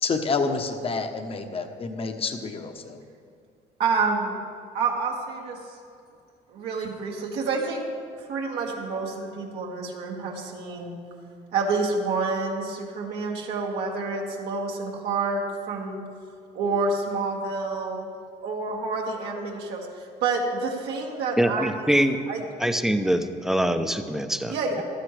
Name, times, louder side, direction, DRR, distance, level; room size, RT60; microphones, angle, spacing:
voice 1, 0.0-3.0, left 4 dB, 35° left, 6 dB, 1.0 m, -28 dB
voice 2, 3.8-4.4 4.7-5.6 6.5-7.8 8.3-11.0 11.5-16.0 16.5-18.1 18.4-19.9 20.2-21.7 22.3-22.4 24.5-24.8, right 4 dB, 80° right, -2 dB, 1.9 m, -28 dB
voice 3, 21.4-22.2 22.6-24.8, equal, ahead, 8 dB, 0.7 m, -24 dB
15.5 x 12.0 x 3.3 m, 2.3 s
cardioid pair, 110°, 17 cm